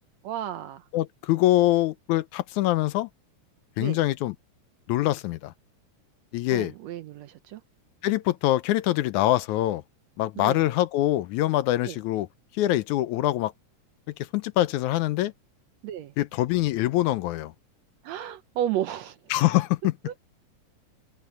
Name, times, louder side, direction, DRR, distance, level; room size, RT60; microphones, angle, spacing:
voice 1, 0.2-0.8 3.8-4.0 6.5-7.6 10.4-10.6 11.8-12.0 15.8-16.1 18.0-19.2 20.1-20.2, right 11 dB, 75° right, 1.7 m, -32 dB
voice 2, 0.9-3.1 3.8-4.4 4.9-5.5 6.3-6.7 8.0-9.8 10.2-12.3 12.5-13.5 14.2-15.3 16.2-17.5 19.3-19.9, left 15 dB, 80° left, 2.0 m, -24 dB
omnidirectional pair, 3.6 m